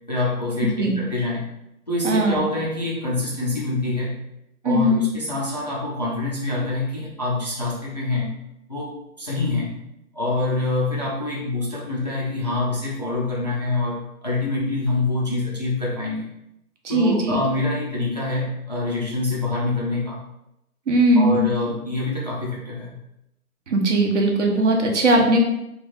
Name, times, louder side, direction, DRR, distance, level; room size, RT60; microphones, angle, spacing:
voice 1, 0.1-1.4 1.9-4.2 4.6-8.3 8.7-9.8 10.1-16.3 16.9-20.2 21.2-22.9, left 2 dB, 30° left, -5 dB, 0.4 m, -26 dB
voice 2, 2.0-2.5 4.6-5.1 16.8-17.4 20.9-21.5 23.7-25.4, right 1 dB, 50° right, 2 dB, 0.8 m, -19 dB
3.2 x 2.4 x 3.8 m, 0.85 s
hypercardioid pair, 155°, 45 cm